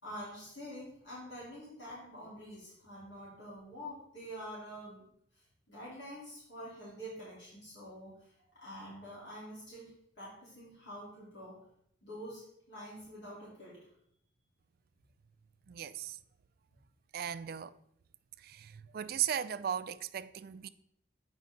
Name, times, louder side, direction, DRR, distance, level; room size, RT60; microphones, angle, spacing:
voice 1, 0.0-5.0 5.4-8.3 8.6-11.6 12.0-13.8, equal, 70° left, 3.5 m, -47 dB
voice 2, 15.7-16.2 17.1-17.7 18.4-20.7, right 9 dB, 55° right, 0.3 m, -37 dB
8.4 x 5.4 x 3.8 m
head